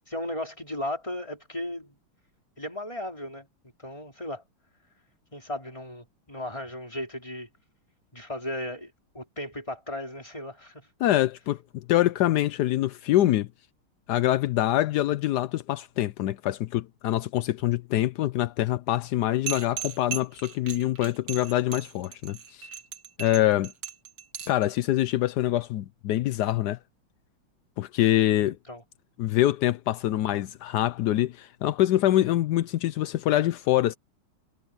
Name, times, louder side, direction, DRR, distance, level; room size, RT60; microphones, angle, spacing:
voice 1, 0.1-2.0 2.6-3.5 3.8-4.4 5.3-7.5 8.1-10.9 28.4-28.8, left 1 dB, 15° left, 4.3 m, -36 dB
voice 2, 11.0-13.5 14.1-22.7 23.2-23.7 24.5-26.8 27.8-28.6 29.2-33.9, left 14 dB, 75° left, 0.9 m, -25 dB
sound 1, 19.5-24.7, right 8 dB, 45° right, 1.7 m, -37 dB
omnidirectional pair, 2.4 m